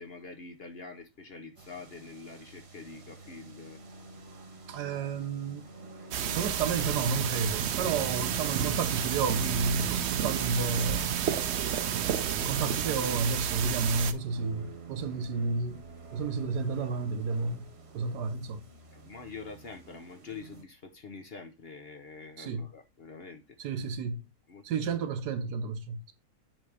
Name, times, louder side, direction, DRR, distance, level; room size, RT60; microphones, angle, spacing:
voice 1, 0.0-3.8 18.9-23.4 24.5-24.6, left 4 dB, 45° left, 1.0 m, -45 dB
sound 1, 1.6-20.6, right 8 dB, 45° right, 1.3 m, -45 dB
voice 2, 4.7-5.9 6.3-11.5 11.8-15.8 16.1-17.6 17.9-18.6 22.4-22.7 23.6-24.3 24.6-26.0, right 4 dB, 85° right, 1.5 m, -31 dB
sound 2, 6.1-14.1, right 9 dB, 60° right, 0.7 m, -31 dB
7.7 x 3.4 x 4.8 m
omnidirectional pair, 1.7 m